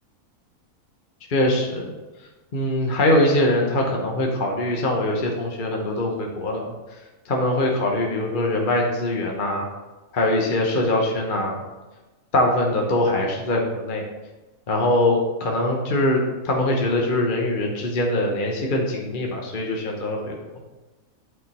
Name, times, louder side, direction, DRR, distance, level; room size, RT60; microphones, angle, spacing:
voice 1, 1.3-1.9 2.5-7.0 7.2-9.7 10.1-11.6 12.3-14.0 14.7-20.4, left 1 dB, 40° left, 0 dB, 1.0 m, -22 dB
8.9 x 4.5 x 4.2 m, 1.1 s
omnidirectional pair, 1.6 m